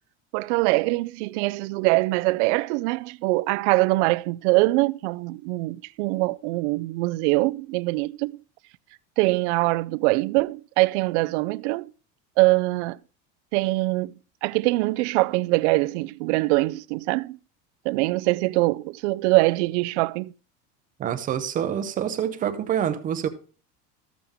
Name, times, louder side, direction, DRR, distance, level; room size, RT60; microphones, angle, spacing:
voice 1, 0.3-8.4 9.2-11.9 12.4-13.0 13.5-14.1 14.4-17.4 17.8-20.3, right 22 dB, 90° right, 0.5 m, -23 dB
voice 2, 21.0-23.3, right 9 dB, 25° right, 0.6 m, -26 dB
13.5 x 7.3 x 3.6 m
cardioid pair, 175°, 33 cm